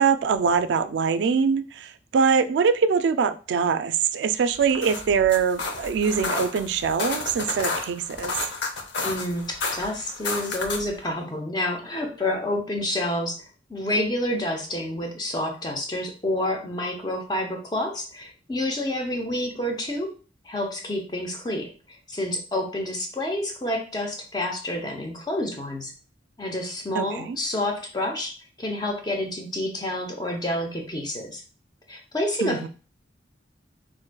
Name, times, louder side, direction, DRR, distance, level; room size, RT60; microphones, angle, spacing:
voice 1, 0.0-8.3 26.9-27.4 32.4-32.7, right 6 dB, 70° right, 0.3 m, -23 dB
sound 1, 4.6-11.0, left 3 dB, 80° left, 0.7 m, -31 dB
voice 2, 9.0-13.4 13.7-20.1 20.4-25.9 26.4-31.4 31.9-32.7, left 1 dB, 20° left, 0.6 m, -29 dB
4.6 x 2.5 x 2.2 m
head